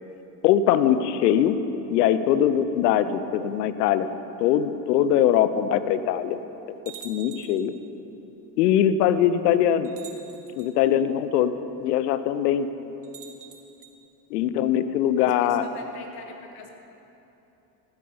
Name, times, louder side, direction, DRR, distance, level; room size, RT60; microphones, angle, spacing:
voice 1, 0.4-1.6 1.9-4.1 4.4-6.4 7.0-7.7 8.6-9.9 10.6-11.5 11.8-12.7 14.3-15.6, left 10 dB, 70° left, 12 dB, 0.8 m, -21 dB
sound 1, 6.9-7.7 8.9-9.0 9.8-10.7 13.0-13.9, right 8 dB, 40° right, 1.9 m, -45 dB
voice 2, 15.1-16.7, left 6 dB, 50° left, 4 dB, 1.7 m, -43 dB
15.5 x 8.1 x 5.5 m, 2.9 s
hypercardioid pair, 70°, 49 cm